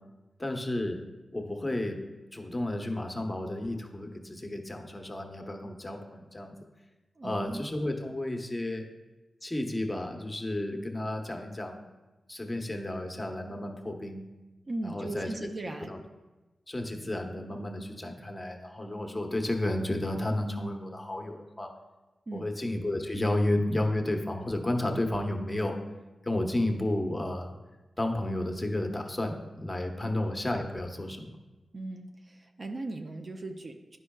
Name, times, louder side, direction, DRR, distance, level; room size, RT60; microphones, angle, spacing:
voice 1, 0.4-1.0 1.3-2.0 2.3-6.6 7.2-8.8 9.4-11.9 12.3-14.2 14.8-15.5 15.9-16.0 16.7-21.7 22.3-25.8 26.2-27.6 28.0-31.4, left 1 dB, 20° left, 3 dB, 0.9 m, -32 dB
voice 2, 7.2-7.6 14.7-15.9 22.3-22.5 31.7-34.0, right 2 dB, 50° right, 4 dB, 0.5 m, -38 dB
9.8 x 5.4 x 2.3 m, 1.1 s
cardioid pair, 50°, 0 cm